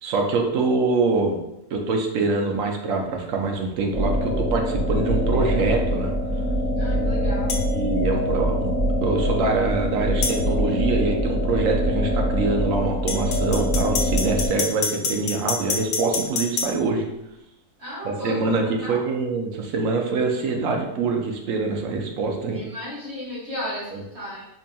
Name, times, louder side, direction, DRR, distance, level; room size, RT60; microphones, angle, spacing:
voice 1, 0.0-1.4 1.7-6.1 7.7-8.7 9.0-17.1 18.0-22.6 23.9-24.0, right 3 dB, 65° right, 1 dB, 1.0 m, -24 dB
sound 1, 3.9-14.5, equal, ahead, 1.1 m, -24 dB
voice 2, 6.7-7.6 17.8-19.1 22.5-24.5, equal, 45° right, -7 dB, 1.8 m, -34 dB
sound 2, 7.5-7.7 10.2-10.4 13.1-16.7, left 4 dB, 65° left, 0.9 m, -26 dB
4.1 x 3.5 x 2.3 m, 0.88 s
omnidirectional pair, 1.6 m